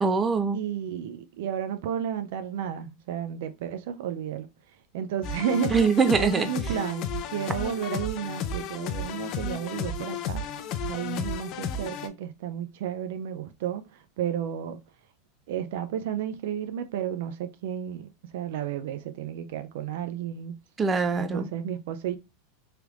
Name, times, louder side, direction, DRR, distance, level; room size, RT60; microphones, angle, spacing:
voice 1, 0.0-0.6 5.7-6.5 20.8-21.5, right 5 dB, 20° right, 0.5 m, -23 dB
voice 2, 0.5-4.5 4.9-5.7 6.2-10.4 10.9-14.8 15.5-20.6 21.2-22.2, right 9 dB, 70° right, 0.4 m, -32 dB
sound 1, 5.2-12.1, left 4 dB, 50° left, 0.4 m, -33 dB
3.2 x 3.0 x 2.4 m
hypercardioid pair, 115°, 0 cm